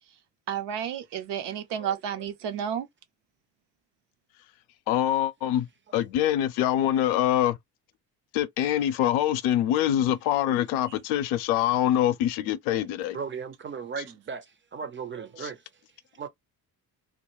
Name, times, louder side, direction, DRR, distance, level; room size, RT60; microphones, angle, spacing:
voice 1, 0.5-2.9, right 8 dB, 60° right, 0.7 m, -31 dB
voice 2, 1.7-2.3 13.1-15.6 16.1-16.3, right 6 dB, 25° right, 0.6 m, -37 dB
voice 3, 4.9-5.7 5.9-7.6 8.3-13.2 15.4-15.5, left 12 dB, 70° left, 0.6 m, -24 dB
2.2 x 2.2 x 3.0 m
hypercardioid pair, 45°, 48 cm